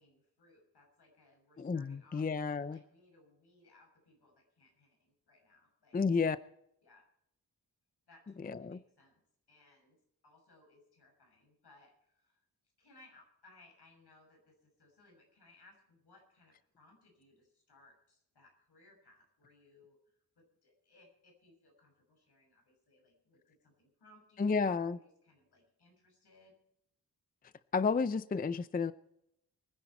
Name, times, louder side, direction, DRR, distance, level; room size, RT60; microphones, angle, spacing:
voice 1, 0.0-6.0 6.8-7.1 8.1-9.2 9.5-10.0 10.2-12.4 12.8-20.0 20.4-26.5, left 2 dB, 80° left, 2 dB, 6.5 m, -64 dB
voice 2, 1.6-2.8 5.9-6.4 8.4-8.8 24.4-25.0 27.7-28.9, left 5 dB, 25° left, 15 dB, 0.4 m, -31 dB
24.0 x 10.5 x 4.3 m, 0.76 s
wide cardioid pair, 135°, 39 cm